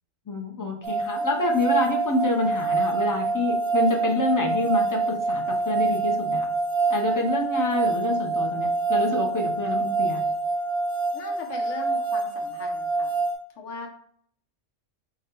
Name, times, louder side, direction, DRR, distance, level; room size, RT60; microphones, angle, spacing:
voice 1, 0.3-6.5 6.9-10.2, left 2 dB, 25° left, 1 dB, 0.5 m, -27 dB
sound 1, 0.8-13.3, right 3 dB, 55° right, 0.8 m, -26 dB
voice 2, 11.1-13.1 13.6-13.9, left 4 dB, 75° left, 2 dB, 1.2 m, -39 dB
4.9 x 2.3 x 4.4 m, 0.63 s
omnidirectional pair, 1.3 m